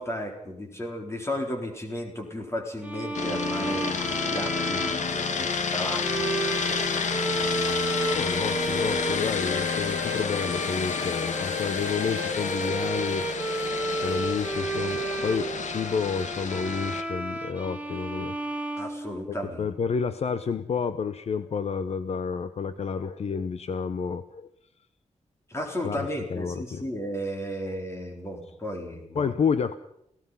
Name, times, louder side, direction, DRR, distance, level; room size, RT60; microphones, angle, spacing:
voice 1, 0.0-6.4 6.7-8.3 18.8-19.7 25.5-29.3, equal, 20° left, 2 dB, 4.2 m, -35 dB
sound 1, 2.8-19.7, right 2 dB, 10° right, 1.9 m, -33 dB
sound 2, 3.1-17.0, left 5 dB, 75° left, 1.6 m, -30 dB
voice 2, 8.1-13.7 14.0-18.4 19.3-24.5 25.8-26.8 27.6-27.7 29.1-29.8, left 6 dB, 60° left, 12 dB, 0.8 m, -30 dB
29.0 x 17.0 x 5.6 m, 0.73 s
wide cardioid pair, 150°, 12 cm